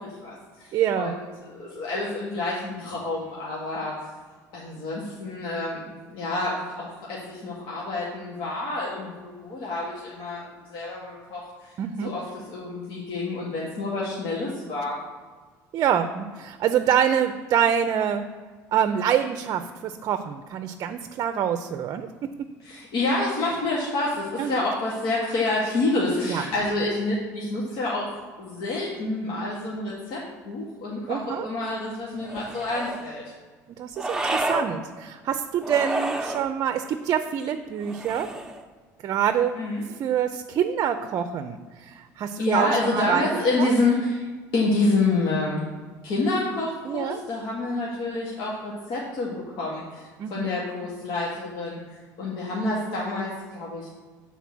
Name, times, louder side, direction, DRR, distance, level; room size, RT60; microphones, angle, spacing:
voice 1, 0.0-3.9 4.5-15.0 22.6-33.2 39.5-39.8 42.4-45.6 46.0-51.8 52.2-53.9, left 2 dB, 70° left, -5 dB, 1.7 m, -28 dB
voice 2, 0.7-1.2 11.8-12.1 15.7-18.2 18.7-22.1 24.4-24.6 26.3-26.4 31.1-31.5 33.8-38.3 39.0-39.6 40.0-43.3 43.6-43.8 46.8-47.2 50.2-50.5, right 9 dB, 55° right, 8 dB, 0.5 m, -26 dB
sound 1, 32.2-33.1 34.0-34.7 35.6-36.5 37.8-38.6, right 1 dB, 10° right, 0.9 m, -29 dB
7.0 x 4.2 x 6.1 m, 1.5 s
supercardioid pair, 90°, 8 cm